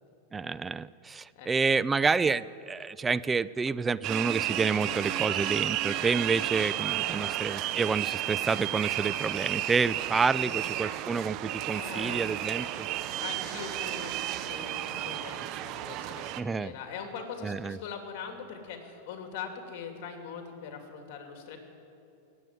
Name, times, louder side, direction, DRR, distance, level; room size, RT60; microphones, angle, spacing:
voice 1, 0.3-12.9 16.4-16.7 17.4-17.8, right 4 dB, 15° right, 17 dB, 0.4 m, -29 dB
voice 2, 1.3-1.8 4.8-5.0 7.0-7.4 10.3-10.5 11.7-12.4 13.2-21.6, left 6 dB, 55° left, 4 dB, 2.7 m, -42 dB
sound 1, 4.0-16.4, right 14 dB, 45° right, 0.7 m, -32 dB
18.5 x 8.0 x 9.3 m, 2.8 s
hypercardioid pair, 110°, 0 cm